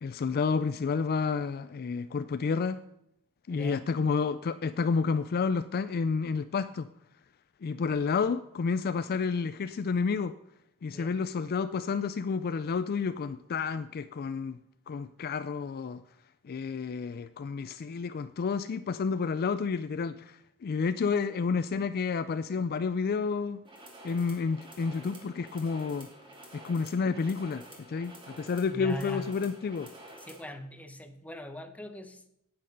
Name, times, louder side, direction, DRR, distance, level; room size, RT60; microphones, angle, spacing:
voice 1, 0.0-2.8 3.5-6.9 7.6-10.4 10.8-14.6 14.9-16.0 16.4-23.6 24.0-26.1 26.5-29.9, left 5 dB, 45° left, 0.4 m, -30 dB
voice 2, 3.5-3.9 10.9-11.1 28.7-29.3 30.2-32.3, left 1 dB, 5° left, 0.8 m, -41 dB
sound 1, 23.6-30.5, right 1 dB, 20° right, 2.4 m, -50 dB
9.8 x 8.7 x 5.3 m
head